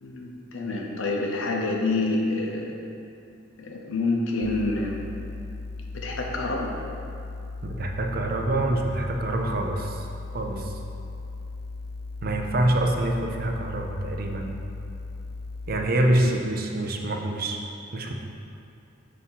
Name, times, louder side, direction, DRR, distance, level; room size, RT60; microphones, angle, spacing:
voice 1, 0.0-2.7 3.6-5.0 5.9-6.7 16.2-16.4, left 2 dB, 90° left, 0 dB, 0.7 m, -27 dB
sound 1, 4.4-15.8, left 3 dB, 55° left, 0.4 m, -37 dB
voice 2, 7.6-10.0 10.3-10.7 12.2-14.5 15.7-17.6 17.9-18.1, right 1 dB, 50° right, 2 dB, 0.5 m, -26 dB
6.4 x 2.8 x 5.7 m, 2.6 s
head